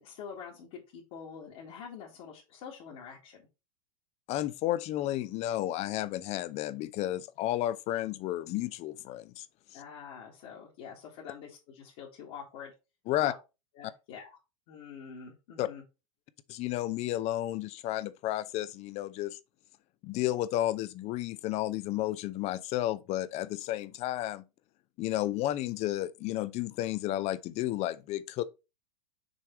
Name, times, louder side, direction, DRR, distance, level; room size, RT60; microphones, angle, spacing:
voice 1, 0.0-3.4 9.7-12.7 13.2-13.3 13.8-14.4 14.7-15.8, left 7 dB, 55° left, 1.9 m, -46 dB
voice 2, 4.3-9.5 9.7-9.8 13.1-13.3 15.6-15.7 16.5-19.4 20.0-24.4 25.0-28.4, left 14 dB, 40° left, 0.6 m, -32 dB
6.2 x 3.4 x 4.4 m
hypercardioid pair, 100°, 17 cm